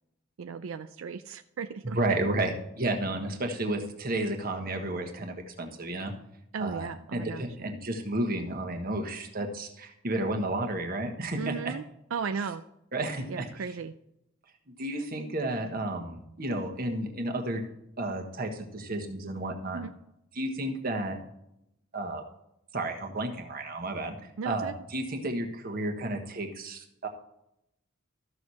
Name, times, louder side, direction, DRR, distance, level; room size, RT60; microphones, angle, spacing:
voice 1, 0.4-2.2 6.5-7.8 11.4-12.6 13.3-13.9 19.7-19.9 24.4-24.7, right 5 dB, 85° right, 9 dB, 0.4 m, -36 dB
voice 2, 1.8-6.1 6.6-11.7 12.9-13.5 14.8-17.6 18.0-19.8 20.3-21.2 21.9-22.2 22.7-27.1, right 1 dB, 45° right, 4 dB, 1.4 m, -32 dB
13.5 x 6.4 x 4.2 m, 0.84 s
head